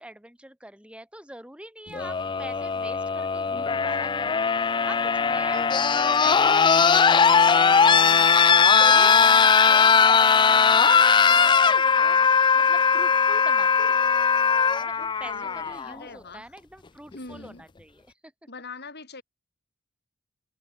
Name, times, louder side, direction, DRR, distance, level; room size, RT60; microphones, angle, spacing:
voice 1, 0.0-8.2 8.6-9.3 9.6-14.0 14.8-18.3, right 1 dB, 5° right, 7.6 m, -44 dB
sound 1, 1.9-15.9 17.1-17.2, left 6 dB, 20° left, 0.4 m, -19 dB
voice 2, 6.2-6.9 14.9-16.5 17.1-17.6 18.5-19.2, left 4 dB, 50° left, 5.3 m, -43 dB
head